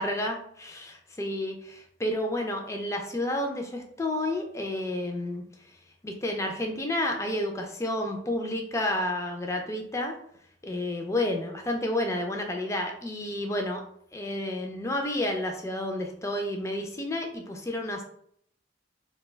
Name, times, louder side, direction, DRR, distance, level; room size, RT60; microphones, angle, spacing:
voice 1, 0.0-5.4 6.0-10.1 10.6-13.8 14.1-18.0, left 1 dB, 15° left, 2 dB, 0.4 m, -30 dB
2.3 x 2.2 x 3.2 m, 0.66 s
head